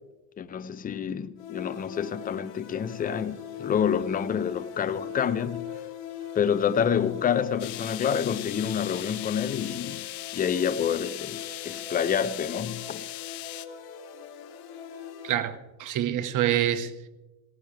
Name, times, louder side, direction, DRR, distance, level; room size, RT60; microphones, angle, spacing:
voice 1, 0.4-5.7 6.3-10.1 10.3-13.0, left 8 dB, 15° left, 0.6 m, -28 dB
sound 1, 1.4-15.3, left 8 dB, 50° left, 2.6 m, -41 dB
sound 2, 7.6-13.7, left 16 dB, 80° left, 1.2 m, -39 dB
voice 2, 15.2-17.1, right 11 dB, 40° right, 1.4 m, -27 dB
18.5 x 18.0 x 3.4 m
supercardioid pair, 115°, 50 cm